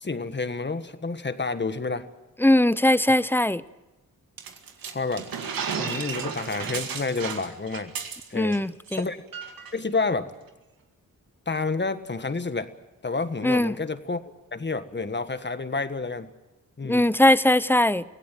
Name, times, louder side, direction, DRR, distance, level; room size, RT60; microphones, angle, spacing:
voice 1, 0.0-2.1 3.1-3.2 4.9-5.3 5.8-7.9 8.3-8.6 9.0-9.2 9.7-10.3 11.5-12.7 13.0-14.2 14.5-16.3 16.8-17.1, left 3 dB, 30° left, 11 dB, 1.6 m, -29 dB
voice 2, 2.4-3.6 8.3-9.1 13.4-13.7 16.8-18.0, left 1 dB, 5° left, 17 dB, 0.7 m, -20 dB
sound 1, 4.4-8.6 8.9-9.0 9.3-9.7, right 6 dB, 90° right, 2.2 m, -33 dB
25.0 x 17.0 x 7.7 m, 1.1 s
cardioid pair, 75°, 34 cm